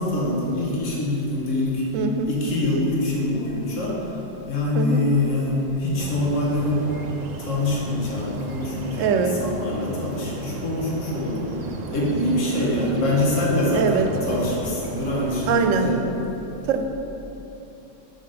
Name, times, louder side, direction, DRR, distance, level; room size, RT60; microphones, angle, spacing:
voice 1, 0.0-1.8 2.3-4.0 4.5-6.9 7.4-11.5 11.9-16.0, left 1 dB, 75° left, -5 dB, 1.5 m, -24 dB
voice 2, 1.9-2.3 4.7-5.0 8.9-9.4 13.7-14.1 15.5-15.9 16.7-16.8, right 5 dB, 85° right, 6 dB, 1.0 m, -22 dB
sound 1, 6.0-15.6, right 3 dB, 65° right, 0.4 m, -36 dB
5.9 x 4.9 x 4.9 m, 3.0 s
omnidirectional pair, 1.3 m